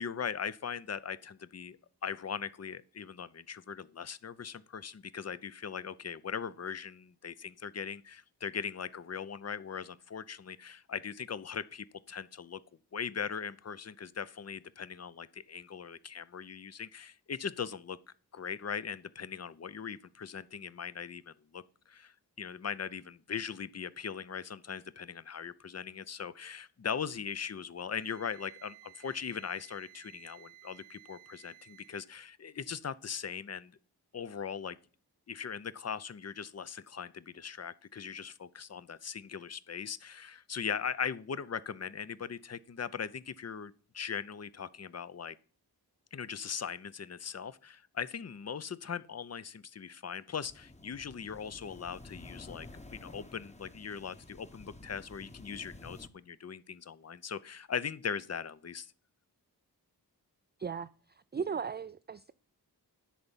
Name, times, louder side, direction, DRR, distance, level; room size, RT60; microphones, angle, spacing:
voice 1, 0.0-1.8 2.0-12.6 12.9-18.0 18.3-33.8 34.1-34.8 35.3-45.4 46.1-58.9, left 7 dB, 40° left, 0.6 m, -40 dB
Wind instrument woodwind instrument, 27.9-32.1, right 16 dB, 85° right, 1.2 m, -56 dB
sound 1, 50.4-56.1, left 2 dB, 15° left, 1.0 m, -51 dB
voice 2, 60.6-62.3, right 6 dB, 25° right, 0.4 m, -37 dB
10.5 x 4.0 x 7.2 m
cardioid pair, 55°, 40 cm